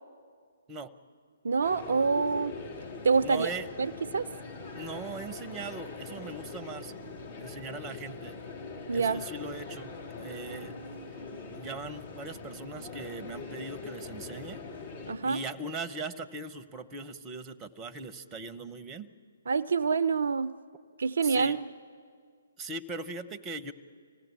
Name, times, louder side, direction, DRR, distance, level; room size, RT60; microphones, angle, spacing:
voice 1, 1.4-2.5 3.0-3.5 3.8-4.3 8.9-9.2 15.1-15.4 19.5-20.5 21.0-21.6, right 5 dB, 60° right, 15 dB, 0.5 m, -26 dB
sound 1, 1.6-15.1, left 3 dB, 50° left, 4.7 m, -42 dB
voice 2, 3.2-3.7 4.7-6.9 7.4-8.4 8.9-9.9 10.2-10.8 11.1-11.2 11.4-14.6 15.2-19.1 21.2-21.6 22.6-23.7, right 3 dB, 15° right, 13 dB, 1.0 m, -39 dB
25.5 x 17.0 x 9.9 m, 2.1 s
figure-of-eight pair, 130°, 0 cm